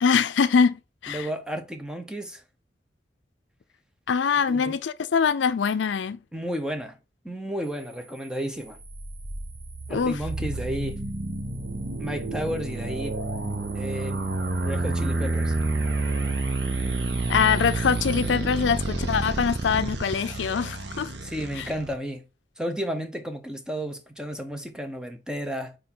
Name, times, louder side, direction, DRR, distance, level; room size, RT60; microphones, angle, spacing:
voice 1, 0.0-1.3 4.1-6.2 9.9-10.2 17.3-21.1 21.6-21.7, left 6 dB, 85° left, 0.4 m, -23 dB
voice 2, 1.1-2.4 4.5-4.8 6.3-7.0 7.2-8.8 9.9-11.0 12.0-13.2 13.7-14.2 14.6-15.5 21.2-22.2 22.6-25.8, equal, 5° right, 0.7 m, -32 dB
sound 1, 7.6-18.3, right 3 dB, 55° right, 2.0 m, -45 dB
sound 2, 8.7-21.9, right 1 dB, 75° right, 1.1 m, -35 dB
sound 3, 11.4-20.2, right 3 dB, 35° right, 0.3 m, -29 dB
4.4 x 4.4 x 5.6 m
head